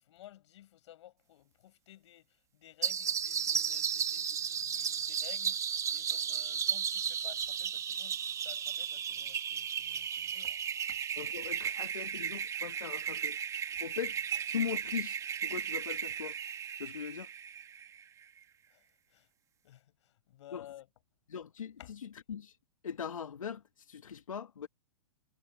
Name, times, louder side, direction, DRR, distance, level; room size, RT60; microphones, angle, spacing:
voice 1, 0.0-11.0 18.7-19.3 19.6-20.9 21.8-21.9, left 13 dB, 60° left, 7.1 m, -55 dB
sound 1, 2.8-18.0, right 8 dB, 20° right, 2.0 m, -35 dB
voice 2, 11.2-13.4 13.8-14.1 14.5-16.3 16.8-17.3 20.5-20.7 21.3-22.6 22.8-24.7, left 7 dB, 80° left, 1.9 m, -40 dB
hypercardioid pair, 120°, 17 cm